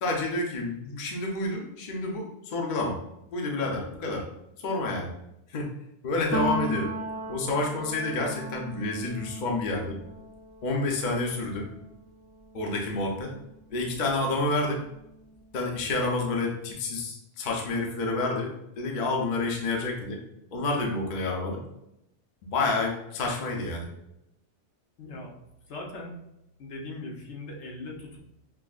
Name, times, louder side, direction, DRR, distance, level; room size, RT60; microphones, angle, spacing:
voice 1, 0.0-3.0 3.3-4.2 4.6-5.1 5.5-5.7 6.0-6.9 7.3-10.0 10.6-11.7 12.5-13.3 13.7-14.8 15.5-18.5 18.8-20.2 20.5-21.6 22.4-23.9, left 2 dB, 50° left, 0 dB, 0.7 m, -29 dB
Piano, 6.3-13.9 14.3-15.8, right 3 dB, 20° right, 0.4 m, -37 dB
voice 2, 25.0-25.3 25.7-26.1 26.6-28.2, left 2 dB, 70° left, 0 dB, 1.0 m, -39 dB
5.8 x 2.0 x 2.4 m, 0.84 s
omnidirectional pair, 1.2 m